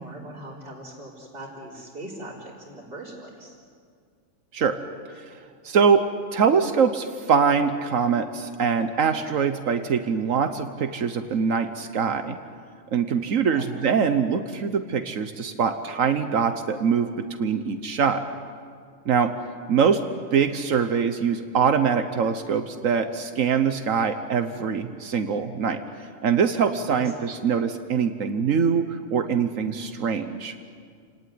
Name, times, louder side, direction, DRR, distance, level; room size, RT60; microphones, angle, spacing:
voice 1, 0.0-3.6 13.4-13.7 26.9-27.1, right 1 dB, 45° right, -7 dB, 4.4 m, -40 dB
voice 2, 5.6-6.1 6.3-12.4 12.9-18.2 19.1-19.3 19.7-20.0 20.3-25.8 26.2-30.5, right 6 dB, 80° right, 8 dB, 1.5 m, -23 dB
28.5 x 19.0 x 9.5 m, 2.1 s
omnidirectional pair, 1.3 m